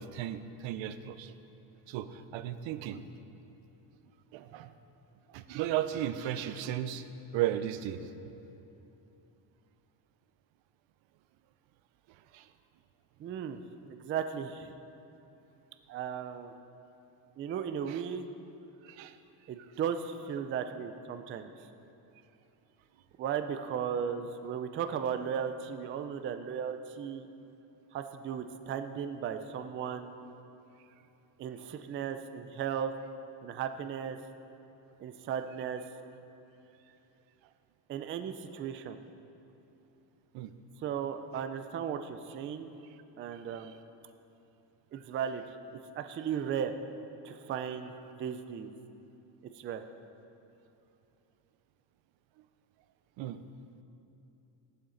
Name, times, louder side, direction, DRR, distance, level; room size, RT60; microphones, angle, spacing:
voice 1, 0.0-1.3 1.9-3.0 4.3-4.7 5.3-7.1 7.3-8.1 12.1-12.5 17.9-18.0 18.8-19.2 40.3-40.5 41.3-41.4 43.4-43.8 53.2-53.4, right 11 dB, 85° right, 11 dB, 0.7 m, -35 dB
voice 2, 13.2-14.7 15.9-16.5 17.4-18.3 19.5-21.5 23.2-27.3 27.9-30.1 31.4-32.9 33.4-34.2 35.0-35.8 37.9-39.0 40.8-42.7 43.2-43.8 44.9-45.4 45.9-46.7 47.2-48.7 49.5-49.8, right 8 dB, 30° right, 8 dB, 0.3 m, -36 dB
14.5 x 11.5 x 3.9 m, 2.9 s
cardioid pair, 170°, 44 cm